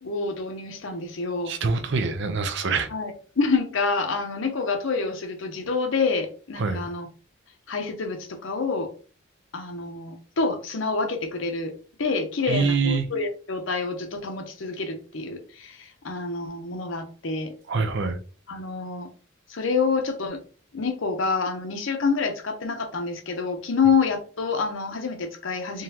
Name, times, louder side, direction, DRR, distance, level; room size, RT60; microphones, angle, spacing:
voice 1, 0.0-1.5 2.9-7.1 7.7-8.9 9.5-11.7 12.0-17.5 18.5-19.1 19.5-20.4 20.7-25.8, left 4 dB, 70° left, 0.8 m, -27 dB
voice 2, 1.4-2.9 6.6-6.8 12.5-13.1 17.7-18.2, right 4 dB, 60° right, 0.6 m, -25 dB
3.8 x 3.1 x 2.8 m
head